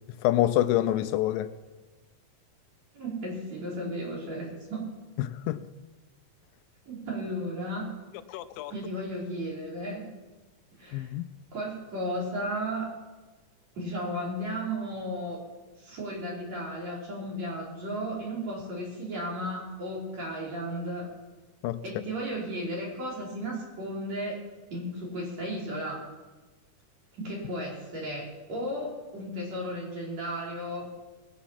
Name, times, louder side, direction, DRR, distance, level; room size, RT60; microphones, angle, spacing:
voice 1, 0.2-1.5 5.2-5.6 8.3-8.7 10.9-11.2 21.6-21.8, left 14 dB, 85° left, 2.3 m, -26 dB
voice 2, 2.9-4.9 6.9-7.9 8.7-10.0 10.8-11.1 11.5-12.9 13.7-15.4 15.8-21.1 21.8-24.4 24.7-26.0 27.2-30.9, equal, 50° right, 4.5 m, -34 dB
19.5 x 8.2 x 5.8 m
omnidirectional pair, 4.0 m